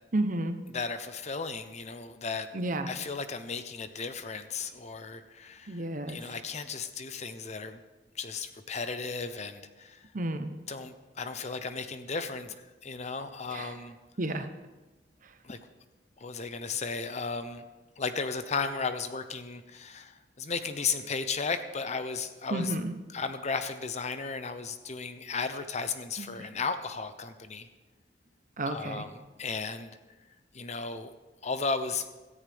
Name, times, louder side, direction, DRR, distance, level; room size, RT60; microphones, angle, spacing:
voice 1, 0.1-0.6 2.5-2.9 5.7-6.4 10.1-10.5 13.5-13.8 14.2-14.5 15.2-15.3 22.5-22.9 26.2-26.5 28.6-29.1, right 1 dB, 50° right, 9 dB, 0.9 m, -32 dB
voice 2, 0.7-2.5 2.9-5.8 6.1-7.8 8.2-10.0 10.7-12.6 12.8-14.0 15.4-15.6 16.2-17.6 18.0-22.7 23.1-27.7 28.7-29.1 29.4-30.0 30.5-31.1 31.4-32.0, left 4 dB, 40° left, 10 dB, 0.8 m, -35 dB
17.0 x 13.5 x 3.6 m, 1.2 s
head